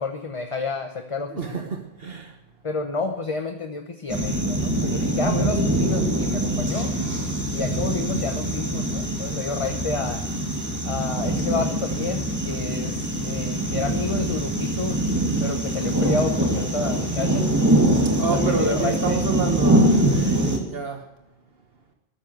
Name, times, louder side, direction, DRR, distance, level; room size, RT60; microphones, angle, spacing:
voice 1, 0.0-1.6 2.6-6.9 7.5-10.2 10.8-15.0 15.4-17.5 18.3-19.2, left 4 dB, 30° left, 6 dB, 1.0 m, -30 dB
voice 2, 1.3-2.3 18.1-21.0, right 4 dB, 65° right, 3 dB, 1.6 m, -28 dB
sound 1, 4.1-20.6, right 1 dB, 15° right, 2.6 m, -23 dB
21.0 x 7.3 x 7.8 m, 0.92 s
omnidirectional pair, 1.1 m